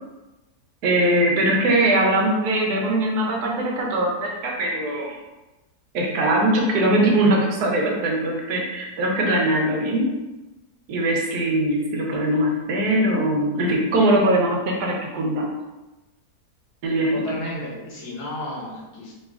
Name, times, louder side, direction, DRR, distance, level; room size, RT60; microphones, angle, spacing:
voice 1, 0.8-5.2 5.9-10.1 10.9-15.4 16.8-17.1, right 1 dB, 90° right, -1 dB, 1.3 m, -21 dB
voice 2, 17.1-19.1, left 1 dB, 90° left, -3 dB, 1.5 m, -33 dB
4.1 x 3.0 x 2.4 m, 1.1 s
omnidirectional pair, 1.6 m